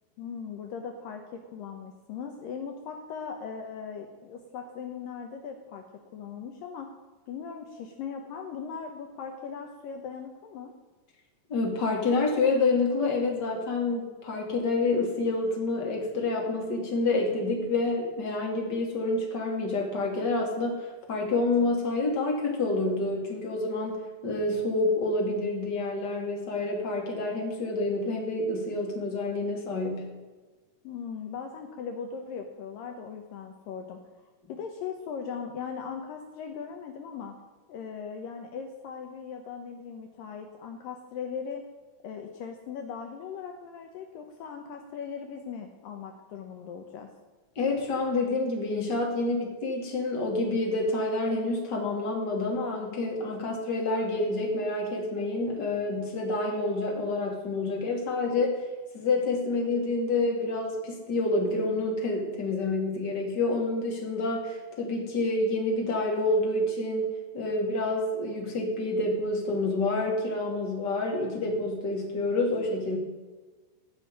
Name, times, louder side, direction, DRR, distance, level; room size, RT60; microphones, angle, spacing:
voice 1, 0.2-5.8 6.1-6.9 7.3-10.7 30.8-34.0 34.5-37.4 37.7-41.7 42.0-47.1, left 6 dB, 70° left, 4 dB, 2.5 m, -39 dB
voice 2, 11.5-30.1 47.6-58.6 58.9-73.0, left 2 dB, 30° left, 0 dB, 2.9 m, -28 dB
16.0 x 6.2 x 9.9 m, 1.3 s
omnidirectional pair, 4.3 m